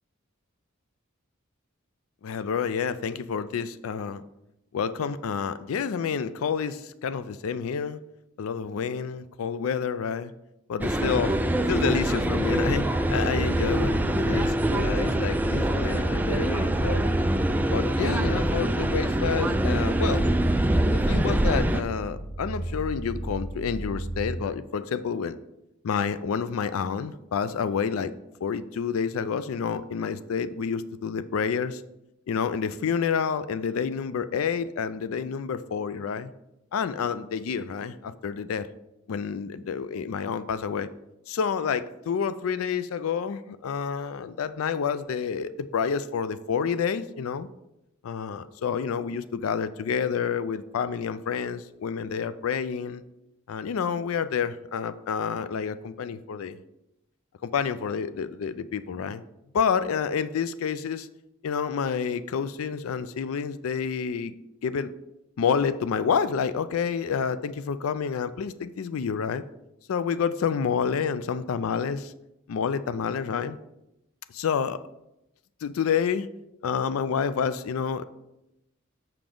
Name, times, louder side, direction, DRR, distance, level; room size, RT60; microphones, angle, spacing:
voice 1, 2.2-4.2 4.7-8.0 8.4-10.3 10.7-11.4 11.7-12.8 13.1-17.0 17.7-20.3 20.9-25.4 25.8-28.1 28.4-31.8 32.3-36.3 36.7-38.7 39.1-40.9 41.3-47.5 48.0-53.0 53.5-56.5 57.4-59.2 59.5-61.1 61.4-64.3 64.6-64.9 65.4-69.4 69.9-72.1 72.5-73.6 74.3-74.8 75.6-76.3 76.6-78.0, left 6 dB, 90° left, 14 dB, 0.4 m, -29 dB
sound 1, 10.8-21.8, right 1 dB, 10° right, 0.3 m, -24 dB
sound 2, 11.9-24.4, right 1 dB, 45° left, 2.8 m, -34 dB
6.8 x 6.0 x 3.8 m, 0.88 s
head